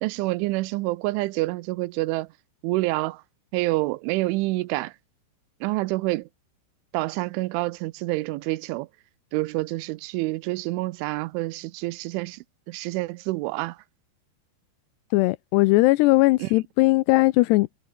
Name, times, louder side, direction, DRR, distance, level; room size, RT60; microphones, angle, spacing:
voice 1, 0.0-2.3 2.6-3.2 3.5-4.9 5.6-6.3 6.9-8.9 9.3-13.8 16.4-16.5, right 20 dB, 85° right, 3.2 m, -27 dB
voice 2, 15.1-17.8, left 21 dB, 85° left, 2.5 m, -19 dB
omnidirectional pair, 5.4 m